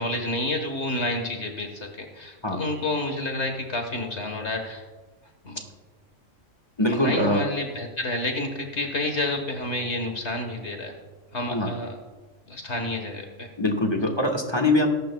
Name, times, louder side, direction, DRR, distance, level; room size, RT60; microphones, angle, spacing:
voice 1, 0.0-4.8 5.4-5.6 6.9-10.9 11.3-12.0 12.5-13.5, left 2 dB, 60° left, 4 dB, 1.7 m, -29 dB
voice 2, 6.8-7.4 11.5-11.7 13.6-14.9, left 1 dB, 20° left, 2 dB, 1.4 m, -23 dB
21.0 x 11.5 x 2.3 m, 1.3 s
omnidirectional pair, 1.3 m